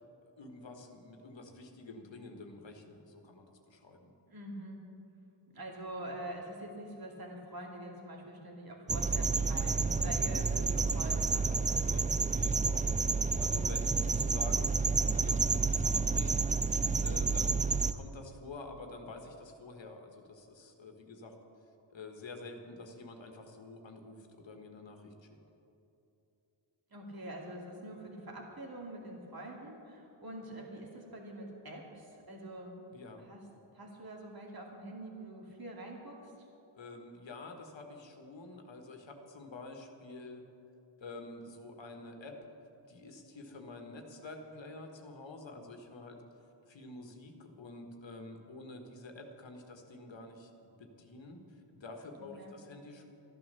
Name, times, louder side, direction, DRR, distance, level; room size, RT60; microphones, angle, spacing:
voice 1, 0.4-4.1 11.8-16.6 17.0-21.3 21.9-25.4 32.9-33.3 36.8-40.4 41.0-42.4 42.9-46.2 46.7-53.0, left 2 dB, 75° left, 4 dB, 1.6 m, -48 dB
voice 2, 4.3-4.8 5.5-12.1 26.9-32.8 33.2-33.4 33.7-36.3 52.4-52.5, right 1 dB, 50° right, -1 dB, 2.7 m, -45 dB
sound 1, 8.9-17.9, right 4 dB, 20° right, 0.4 m, -30 dB
13.0 x 11.0 x 6.8 m, 2.9 s
wide cardioid pair, 75°, 45 cm